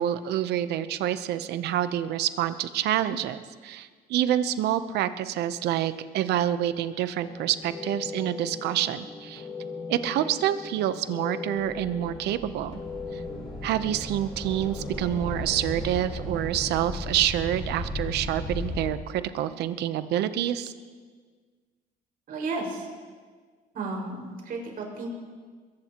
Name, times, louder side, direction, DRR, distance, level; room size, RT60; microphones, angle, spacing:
voice 1, 0.0-9.4 9.9-12.8 13.6-20.7, right 11 dB, 80° right, 12 dB, 0.8 m, -27 dB
sound 1, 7.2-16.0, left 4 dB, 25° left, 1.8 m, -40 dB
sound 2, 11.6-18.9, left 1 dB, ahead, 6.1 m, -36 dB
voice 2, 22.3-22.9 23.7-25.1, right 3 dB, 60° right, -1 dB, 5.5 m, -33 dB
22.5 x 18.5 x 3.0 m, 1.5 s
cardioid pair, 110°, 17 cm